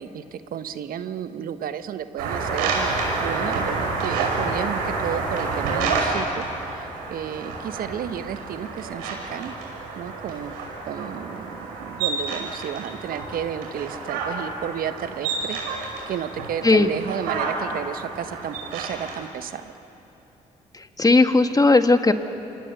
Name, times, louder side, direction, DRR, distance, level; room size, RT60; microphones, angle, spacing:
voice 1, 0.0-9.5 9.9-10.5 10.9-15.8 16.1-19.7, right 9 dB, 60° right, 11 dB, 1.3 m, -32 dB
sound 1, 2.2-19.2, right 4 dB, 80° right, 5.6 m, -29 dB
voice 2, 20.7-22.1, left 3 dB, 20° left, 8 dB, 1.9 m, -17 dB
29.5 x 28.5 x 7.0 m, 3.0 s
hypercardioid pair, 45°, 17 cm